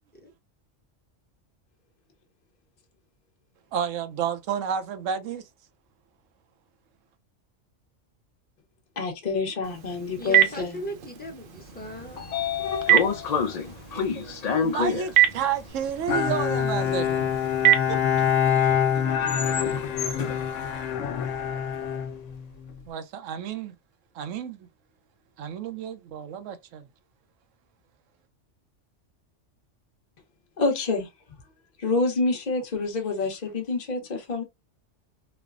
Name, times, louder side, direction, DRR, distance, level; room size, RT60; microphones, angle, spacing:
voice 1, 3.7-5.4 13.5-13.8 14.2-17.3 17.9-18.0 22.9-23.7 24.1-24.7 25.4-26.9, right 8 dB, 85° right, 1.0 m, -31 dB
voice 2, 9.0-10.8 30.6-31.1 31.8-34.4, left 3 dB, 40° left, 0.8 m, -27 dB
Telephone, 9.6-18.5, right 13 dB, 60° right, 0.6 m, -27 dB
voice 3, 10.2-12.2, equal, 10° left, 0.8 m, -38 dB
Train / Sliding door, 11.7-21.9, left 6 dB, 65° left, 0.4 m, -31 dB
Bowed string instrument, 16.1-22.8, left 8 dB, 85° left, 0.9 m, -25 dB
3.2 x 2.0 x 2.3 m
omnidirectional pair, 1.3 m